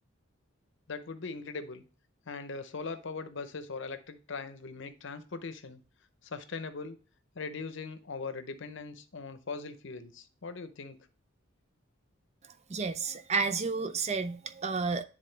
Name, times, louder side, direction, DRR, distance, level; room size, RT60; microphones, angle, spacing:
voice 1, 0.9-1.8 2.3-5.8 6.2-7.0 7.3-11.0, left 4 dB, 60° left, 0.7 m, -40 dB
voice 2, 12.7-15.0, right 4 dB, 35° right, 0.5 m, -31 dB
9.8 x 3.6 x 3.3 m
head